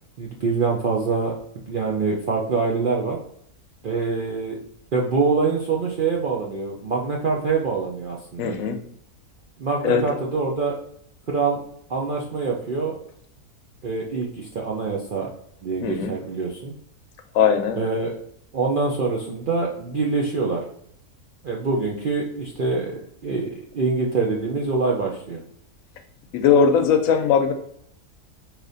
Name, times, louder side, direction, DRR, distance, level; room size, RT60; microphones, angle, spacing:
voice 1, 0.2-1.3 1.7-3.2 3.8-4.6 4.9-8.5 9.6-10.7 11.3-11.6 11.9-13.0 13.8-15.3 15.6-16.7 17.8-18.1 18.5-20.6 21.4-25.4, right 4 dB, 60° right, -2 dB, 0.5 m, -25 dB
voice 2, 8.4-8.8 9.8-10.0 15.8-16.1 17.3-17.8 26.3-27.5, left 6 dB, 75° left, 7 dB, 1.0 m, -19 dB
4.8 x 2.9 x 2.6 m, 0.67 s
omnidirectional pair, 1.5 m